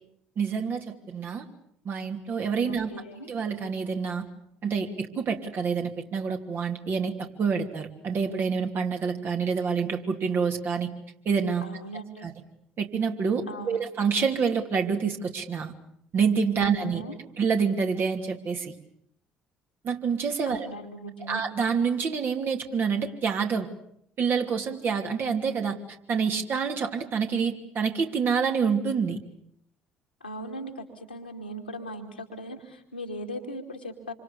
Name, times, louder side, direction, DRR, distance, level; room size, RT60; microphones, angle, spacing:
voice 1, 0.4-1.5 1.8-2.9 3.2-4.2 4.6-10.9 11.2-11.6 12.2-12.3 12.8-15.7 16.1-17.0 17.4-18.7 19.8-20.7 21.2-23.7 24.2-25.8 26.1-29.2, right 6 dB, 45° right, 4 dB, 2.9 m, -27 dB
voice 2, 2.6-3.3 11.6-12.3 13.5-13.8 16.6-17.2 20.5-21.4 30.2-34.1, equal, 90° left, 3 dB, 2.5 m, -39 dB
27.0 x 25.5 x 6.9 m, 0.72 s
figure-of-eight pair, 55°, 5 cm